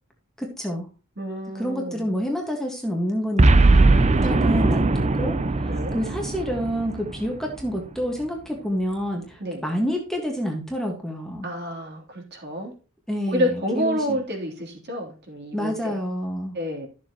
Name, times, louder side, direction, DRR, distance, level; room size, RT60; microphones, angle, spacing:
voice 1, 0.4-0.9 1.5-11.5 13.1-14.2 15.5-16.5, equal, ahead, 1 dB, 1.7 m, -28 dB
voice 2, 1.2-2.1 3.9-4.8 5.7-6.0 9.4-9.6 11.4-12.7 13.3-16.0 16.5-16.9, equal, 50° right, 0 dB, 3.4 m, -29 dB
Boom, 3.4-7.8, right 2 dB, 30° right, 0.6 m, -20 dB
12.5 x 7.3 x 3.0 m, 0.35 s
head